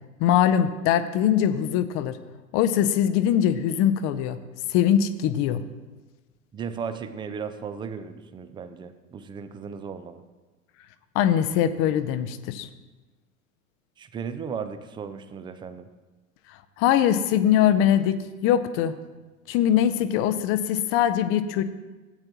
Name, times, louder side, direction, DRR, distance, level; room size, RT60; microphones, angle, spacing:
voice 1, 0.2-2.2 2.5-4.4 4.7-5.6 11.1-12.7 16.8-18.9 19.5-21.6, left 10 dB, 35° left, 12 dB, 0.6 m, -22 dB
voice 2, 6.5-10.2 14.0-15.9, right 6 dB, 10° right, 11 dB, 0.4 m, -35 dB
15.0 x 8.8 x 2.9 m, 1.2 s
figure-of-eight pair, 80°, 40 cm